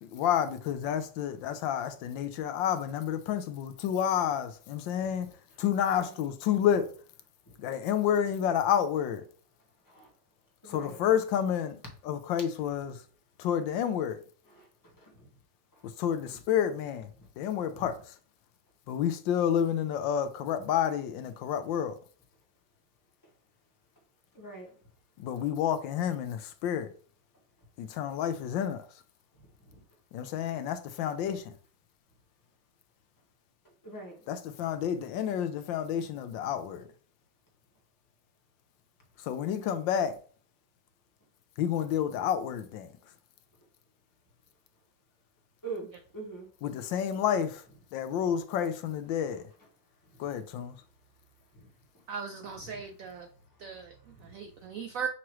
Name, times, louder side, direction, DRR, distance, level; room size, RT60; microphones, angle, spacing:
voice 1, 0.0-5.3 5.6-6.9 7.6-9.2 10.7-11.8 12.0-13.0 13.4-14.2 16.0-17.1 17.4-17.9 18.9-21.9 25.2-26.9 27.8-28.8 30.1-31.5 34.3-36.9 39.2-40.1 41.6-42.9 46.6-47.6 47.9-49.4 50.2-50.8, left 9 dB, 80° left, 1.3 m, -29 dB
voice 2, 10.6-11.0 14.5-14.6 17.7-17.9 24.3-24.7 33.8-34.2 45.6-46.5 52.7-52.8, right 3 dB, 10° left, 1.4 m, -42 dB
voice 3, 52.1-53.3 53.6-55.1, right 6 dB, 85° right, 0.7 m, -38 dB
6.0 x 3.0 x 3.0 m
omnidirectional pair, 2.0 m